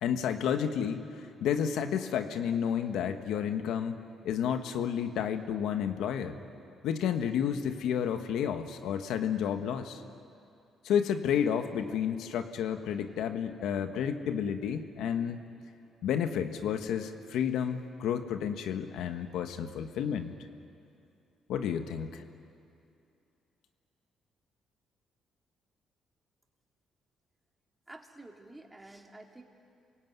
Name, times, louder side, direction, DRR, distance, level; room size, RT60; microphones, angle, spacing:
voice 1, 0.0-4.0 4.2-6.4 6.8-10.0 10.8-15.4 16.0-20.3 21.5-22.2, left 8 dB, 85° left, 7 dB, 1.4 m, -31 dB
voice 2, 27.9-29.4, right 2 dB, 15° right, 2 dB, 3.1 m, -50 dB
27.0 x 23.0 x 9.5 m, 2.6 s
cardioid pair, 90°, 0 cm